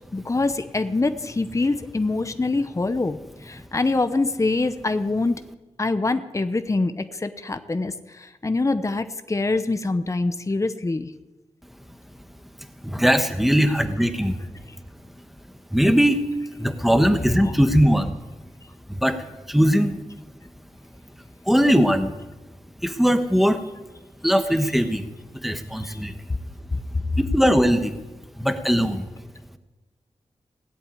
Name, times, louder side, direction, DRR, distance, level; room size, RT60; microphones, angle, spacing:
voice 1, 0.1-3.2 3.4-5.4 5.8-11.1 17.4-17.5 25.8-26.0, left 3 dB, 25° left, 10 dB, 0.8 m, -24 dB
voice 2, 12.8-14.4 15.7-16.2 16.6-18.2 18.9-19.2 19.5-20.0 21.5-22.1 22.8-23.6 24.2-25.1 25.4-26.1 27.2-28.0 28.4-29.1, equal, ahead, 8 dB, 1.4 m, -20 dB
17.5 x 8.0 x 9.6 m, 1.1 s
wide cardioid pair, 90°, 12 cm